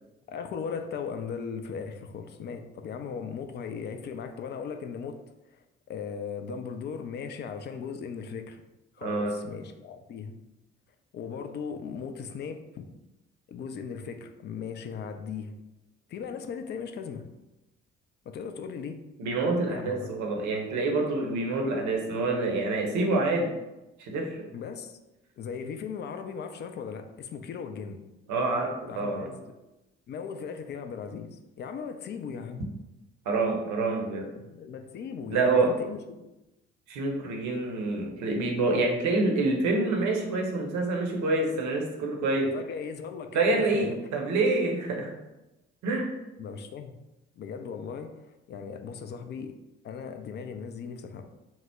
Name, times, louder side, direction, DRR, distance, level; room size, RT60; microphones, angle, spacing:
voice 1, 0.3-5.2 5.9-8.6 9.0-10.3 11.1-12.8 13.5-15.5 16.1-17.3 18.3-19.0 19.7-20.1 24.5-25.0 25.4-28.0 28.9-29.5 30.1-32.7 34.5-36.2 42.5-43.9 46.4-46.9 47.4-48.1 48.5-49.5 49.8-51.2, left 6 dB, 30° left, 7 dB, 0.4 m, -37 dB
voice 2, 9.0-9.3 19.2-23.5 24.0-24.4 28.3-29.3 33.3-34.3 35.3-35.7 36.9-42.5 43.3-45.1 45.8-46.1, right 3 dB, 55° right, 1 dB, 0.7 m, -27 dB
2.9 x 2.0 x 3.4 m, 0.99 s
figure-of-eight pair, 40°, 35 cm